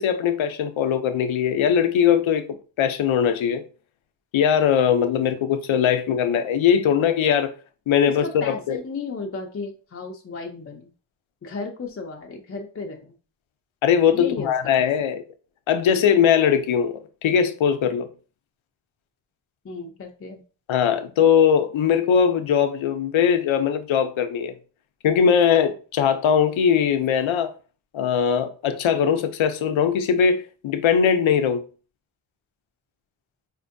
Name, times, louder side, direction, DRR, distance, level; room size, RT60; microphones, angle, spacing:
voice 1, 0.0-2.4 2.8-3.6 4.3-7.5 7.9-8.8 13.8-15.2 15.7-18.1 20.7-24.5 25.0-27.5 27.9-31.6, left 8 dB, 85° left, 0.6 m, -20 dB
voice 2, 8.2-10.9 11.4-13.1 14.1-14.5 14.8-15.1 19.6-20.4, left 4 dB, 30° left, 0.4 m, -34 dB
4.2 x 2.5 x 2.5 m
wide cardioid pair, 105°, 46 cm